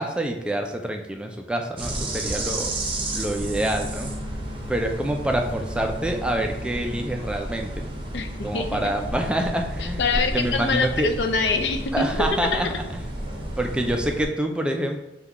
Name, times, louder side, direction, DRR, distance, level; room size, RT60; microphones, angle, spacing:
voice 1, 0.0-2.7 3.1-4.1 4.7-7.9 8.4-10.0 10.3-11.1 11.9-12.7 13.6-15.0, right 1 dB, 5° right, 3 dB, 0.3 m, -26 dB
sound 1, 1.8-14.3, right 1 dB, 30° right, 0.7 m, -31 dB
voice 2, 8.1-8.9 9.8-12.1 12.5-12.7, left 4 dB, 70° left, 4 dB, 0.5 m, -25 dB
5.4 x 2.3 x 3.5 m, 0.96 s
head